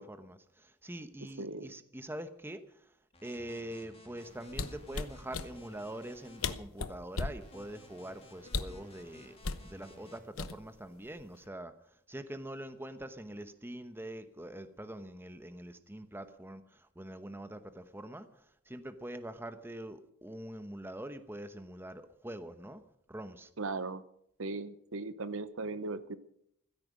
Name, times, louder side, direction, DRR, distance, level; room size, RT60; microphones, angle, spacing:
voice 1, 0.0-2.6 3.2-9.3 9.6-11.7 12.1-18.3 18.7-22.8 23.1-23.5, right 1 dB, 10° right, 9 dB, 1.0 m, -44 dB
voice 2, 1.4-1.7 23.6-24.0 24.4-26.2, right 3 dB, 65° right, 13 dB, 0.9 m, -38 dB
sound 1, 3.1-6.5 7.4-10.2, left 1 dB, 30° left, 3.1 m, -56 dB
sound 2, 4.5-5.5 6.2-6.3 6.4-7.4 8.5-8.8 9.4-9.7 10.4-10.8 11.2-11.5, left 4 dB, 70° left, 1.0 m, -36 dB
15.5 x 13.5 x 6.3 m, 0.71 s
head